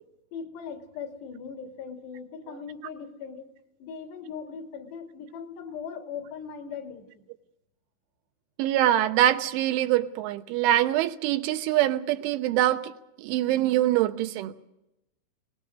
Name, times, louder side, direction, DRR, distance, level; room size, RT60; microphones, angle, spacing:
voice 1, 0.3-3.5 3.8-7.2, left 6 dB, 65° left, 5 dB, 4.2 m, -39 dB
voice 2, 8.6-12.9 13.2-14.5, right 13 dB, 85° right, 9 dB, 3.4 m, -24 dB
23.0 x 20.0 x 6.4 m, 0.88 s
omnidirectional pair, 5.4 m